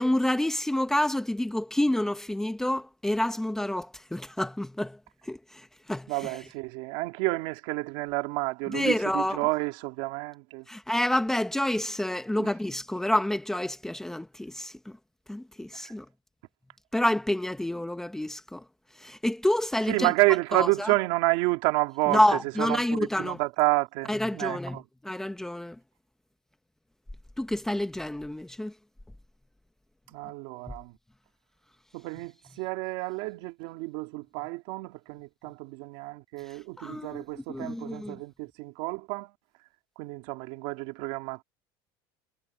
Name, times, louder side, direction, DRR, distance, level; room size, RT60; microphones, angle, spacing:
voice 1, 0.0-6.4 8.7-9.4 10.7-15.0 15.3-16.1 16.9-18.6 18.9-20.1 20.5-20.9 22.1-23.4 24.1-25.8 27.4-28.7 30.7-30.8 36.5-38.2, left 1 dB, 5° left, 1.0 m, -28 dB
voice 2, 6.1-10.6 12.4-12.5 15.7-15.9 19.9-22.2 22.6-24.8 30.1-30.9 31.9-39.3 40.0-41.4, right 23 dB, 70° right, 2.7 m, -29 dB
cardioid pair, 165°, 12 cm